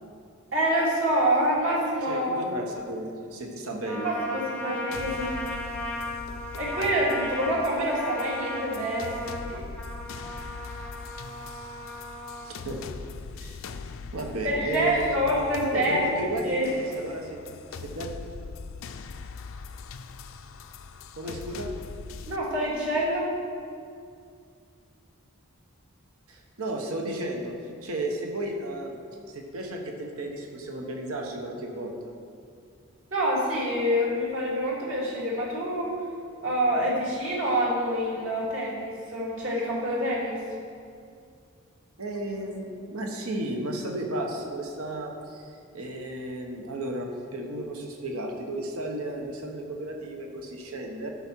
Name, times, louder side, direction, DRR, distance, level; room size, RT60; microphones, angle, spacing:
voice 1, 0.5-2.4 3.9-5.4 6.6-9.7 14.4-16.0 16.4-16.7 22.3-23.4 33.1-36.0 36.4-40.4, equal, 65° right, -5 dB, 2.5 m, -26 dB
voice 2, 2.0-4.1 12.4-12.8 13.4-13.6 14.1-15.2 15.7-17.4 17.7-18.1 21.2-21.7 26.3-27.5 27.8-29.0 29.3-32.0 42.0-51.1, right 1 dB, 85° right, 2 dB, 1.1 m, -34 dB
Trumpet, 3.8-12.5, left 1 dB, 5° left, 0.5 m, -36 dB
sound 1, 4.9-22.4, left 4 dB, 65° left, 0.4 m, -41 dB
11.0 x 5.7 x 4.6 m, 2.3 s
head